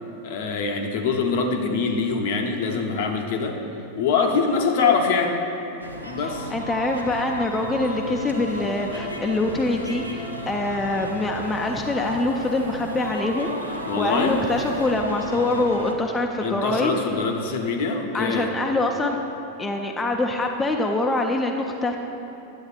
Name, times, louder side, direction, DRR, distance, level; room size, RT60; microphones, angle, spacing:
voice 1, 0.2-3.6 4.0-5.4 6.0-6.5 13.9-14.4 16.4-18.5, left 5 dB, 50° left, 3 dB, 0.6 m, -24 dB
sound 1, 5.8-15.9, equal, 85° right, 0.5 m, -34 dB
voice 2, 6.2-17.2 18.1-19.2 19.6-22.0, left 2 dB, 10° left, 2 dB, 0.4 m, -25 dB
10.5 x 7.8 x 2.4 m, 3.0 s
figure-of-eight pair, 90°, 0 cm